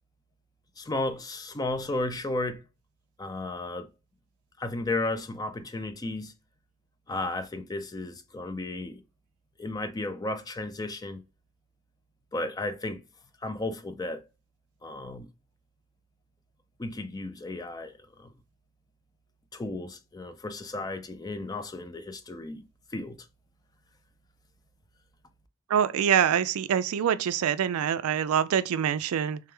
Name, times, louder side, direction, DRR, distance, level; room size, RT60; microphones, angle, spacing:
voice 1, 0.8-2.6 3.2-3.9 4.6-6.3 7.1-9.0 9.6-11.2 12.3-13.0 13.4-14.2 14.8-15.3 16.8-17.9 18.2-18.3 19.5-22.6 22.9-23.2, left 2 dB, 15° left, 0.4 m, -33 dB
voice 2, 25.7-29.4, right 8 dB, 80° right, 0.3 m, -25 dB
3.5 x 3.3 x 3.3 m
head